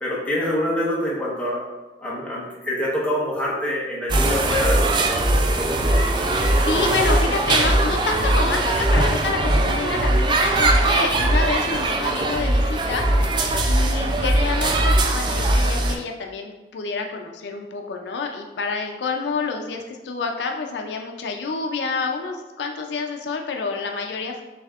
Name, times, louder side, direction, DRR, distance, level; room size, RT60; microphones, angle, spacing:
voice 1, 0.0-1.6 2.0-5.1, left 1 dB, 5° left, -6 dB, 0.9 m, -25 dB
sound 1, 4.1-16.0, right 1 dB, 25° right, 0.3 m, -20 dB
voice 2, 6.2-13.1 13.3-24.4, left 4 dB, 75° left, 3 dB, 0.4 m, -28 dB
6.7 x 2.7 x 2.4 m, 1.1 s
head